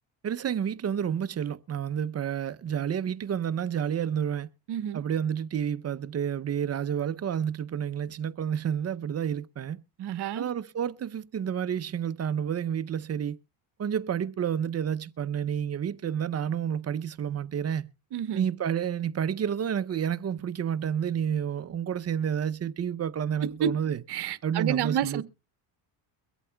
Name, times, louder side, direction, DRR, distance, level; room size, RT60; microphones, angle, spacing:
voice 1, 0.2-4.5 4.9-9.8 10.3-13.4 13.8-17.9 18.3-24.0 24.4-25.2, right 8 dB, 35° right, 0.6 m, -30 dB
voice 2, 4.7-5.0 10.0-10.5 18.1-18.5 23.4-23.7 24.1-25.2, right 9 dB, 55° right, 1.1 m, -29 dB
23.0 x 8.2 x 2.2 m
cardioid pair, 105°, 47 cm